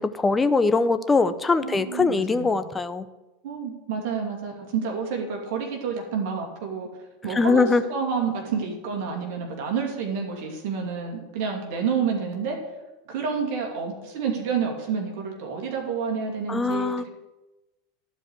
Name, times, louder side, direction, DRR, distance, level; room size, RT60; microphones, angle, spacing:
voice 1, 0.0-3.1 7.3-7.8 16.5-17.1, left 4 dB, 15° left, 11 dB, 0.7 m, -22 dB
voice 2, 1.6-2.6 3.4-6.9 7.2-7.6 7.9-12.6 13.1-17.1, right 6 dB, 60° right, 1 dB, 2.5 m, -29 dB
12.0 x 4.9 x 8.1 m, 1.1 s
hypercardioid pair, 95°, 0 cm